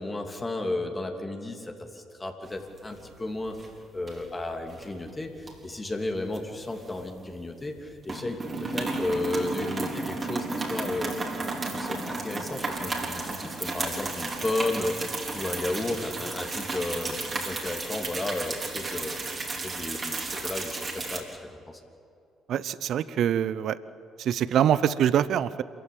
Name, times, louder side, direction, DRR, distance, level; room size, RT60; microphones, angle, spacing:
voice 1, 0.0-3.6 3.9-11.2 11.6-19.1 19.5-21.3 21.5-21.8, left 2 dB, 25° left, 3 dB, 2.9 m, -33 dB
sound 1, 2.5-3.2 3.5-3.7 4.1-4.9 5.4-7.4 7.6-21.2, right 3 dB, 40° right, 4.1 m, -33 dB
voice 2, 22.5-23.8 24.2-25.6, right 10 dB, 65° right, 17 dB, 0.7 m, -24 dB
27.0 x 15.0 x 8.7 m, 2.5 s
hypercardioid pair, 50°, 0 cm